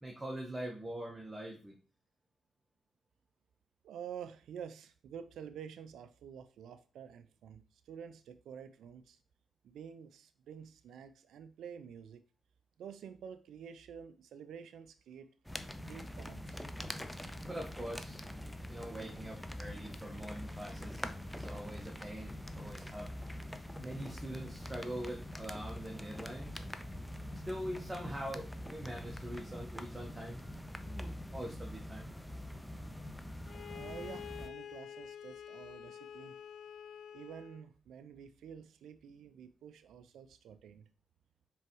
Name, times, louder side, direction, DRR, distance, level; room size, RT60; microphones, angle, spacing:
voice 1, 0.0-1.8 17.4-18.2 18.7-21.1 21.3-23.1 23.8-26.5 27.4-30.4 30.8-32.1, right 1 dB, 20° right, 1.0 m, -43 dB
voice 2, 3.8-9.2 9.6-12.2 12.8-15.3 15.8-16.6 33.7-36.3 37.1-40.8, right 8 dB, 75° right, 0.3 m, -49 dB
sound 1, 15.4-34.5, left 1 dB, 5° left, 0.5 m, -44 dB
Bowed string instrument, 33.4-37.7, left 9 dB, 70° left, 0.4 m, -48 dB
4.4 x 3.4 x 3.0 m
hypercardioid pair, 40°, 0 cm